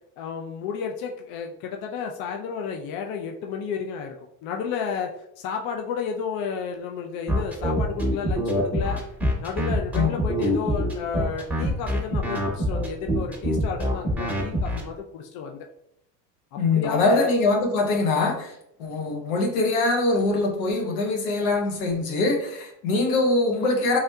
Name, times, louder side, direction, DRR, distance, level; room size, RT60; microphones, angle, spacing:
voice 1, 0.2-4.2 4.4-9.0 9.4-15.7 16.5-17.3, left 6 dB, 60° left, 3 dB, 0.5 m, -32 dB
sound 1, 7.3-14.8, equal, 5° right, 0.8 m, -24 dB
voice 2, 16.6-24.0, left 3 dB, 85° left, 2 dB, 0.8 m, -23 dB
3.4 x 2.6 x 2.3 m, 0.76 s
supercardioid pair, 95°, 41 cm